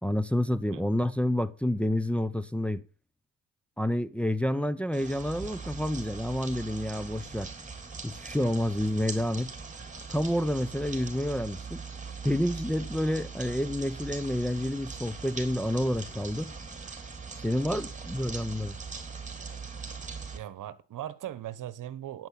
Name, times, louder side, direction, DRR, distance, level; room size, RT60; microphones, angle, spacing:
voice 1, 0.0-2.8 3.8-7.5 8.0-9.5 10.1-11.8 12.2-16.5 17.4-18.8, left 1 dB, 5° left, 0.9 m, -29 dB
sound 1, 4.9-20.4, right 5 dB, 20° right, 3.5 m, -41 dB
voice 2, 20.3-22.3, right 12 dB, 55° right, 1.3 m, -39 dB
10.5 x 9.4 x 5.8 m
supercardioid pair, 70°, 37 cm